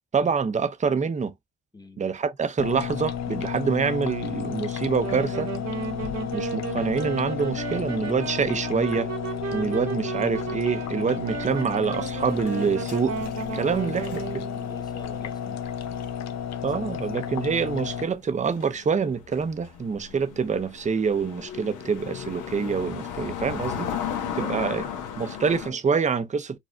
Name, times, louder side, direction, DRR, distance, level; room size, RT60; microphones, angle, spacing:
voice 1, 0.1-1.3 2.0-5.5 6.3-9.1 9.4-13.2 13.5-14.4 16.6-23.9 24.3-24.8 25.2-26.6, right 5 dB, 25° right, 0.6 m, -26 dB
voice 2, 1.7-2.1 13.5-13.8 14.0-14.3 14.5-15.6 24.4-24.7 25.2-25.4, left 2 dB, 15° left, 1.0 m, -46 dB
sound 1, 2.6-18.0, left 8 dB, 65° left, 0.6 m, -32 dB
Wind instrument woodwind instrument, 4.9-14.6, right 6 dB, 65° right, 1.4 m, -34 dB
sound 2, 11.5-17.1 17.3-17.5 18.2-25.7, left 8 dB, 85° left, 1.0 m, -36 dB
5.0 x 2.5 x 2.2 m
cardioid pair, 90°, 30 cm